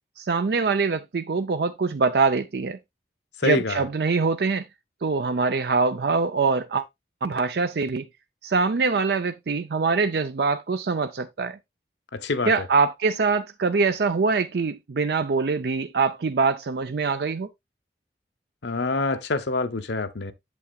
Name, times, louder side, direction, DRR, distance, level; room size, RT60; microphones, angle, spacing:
voice 1, 0.2-2.8 3.4-4.7 5.0-6.9 7.2-8.1 8.4-11.6 12.5-17.5, right 4 dB, 65° right, 0.5 m, -24 dB
voice 2, 3.4-3.8 12.1-12.5 18.6-20.3, left 3 dB, 80° left, 0.9 m, -26 dB
8.3 x 7.6 x 2.3 m
head